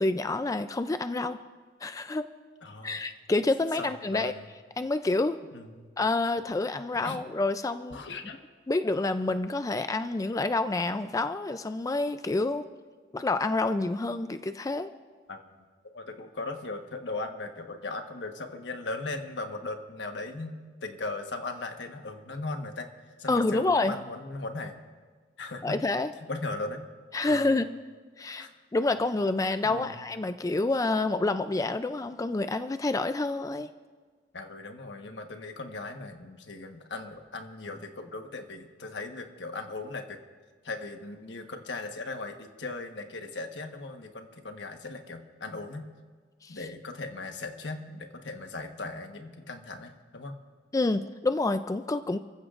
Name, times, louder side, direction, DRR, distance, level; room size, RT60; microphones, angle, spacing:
voice 1, 0.0-1.4 1.8-2.3 2.8-4.3 4.8-5.4 6.0-8.0 8.7-12.6 13.1-14.9 23.3-23.9 25.6-26.1 27.1-27.7 28.2-28.5 28.7-33.7 46.4-46.6 50.7-52.2, left 2 dB, 20° left, 10 dB, 0.3 m, -28 dB
voice 2, 2.6-3.0 3.8-4.5 5.5-5.9 7.0-7.2 7.9-8.4 15.3-15.4 15.9-22.9 23.2-24.8 25.4-25.8 26.2-26.9 27.3-27.5 28.3-28.5 29.6-30.0 34.3-40.2 40.6-45.9 46.5-50.4, left 3 dB, 75° left, 5 dB, 1.3 m, -38 dB
30.0 x 15.0 x 2.5 m, 1.5 s
head